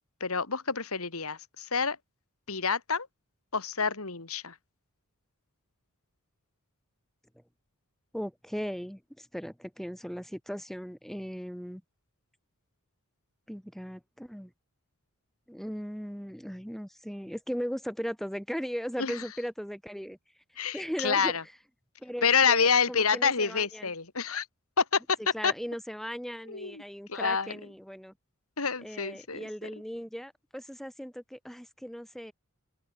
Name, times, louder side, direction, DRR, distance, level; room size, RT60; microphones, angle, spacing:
voice 1, 0.2-2.0 2.5-3.1 3.5-4.5 19.0-19.2 20.6-21.4 22.2-24.5 24.8-25.2 25.4-25.5 26.5-26.8 27.1-27.6 28.6-29.7, left 5 dB, 75° left, 2.5 m, -28 dB
voice 2, 8.1-11.8 13.5-14.5 15.5-20.2 20.7-21.3 22.0-23.9 25.3-28.1 28.8-32.3, equal, ahead, 3.2 m, -38 dB
open air
head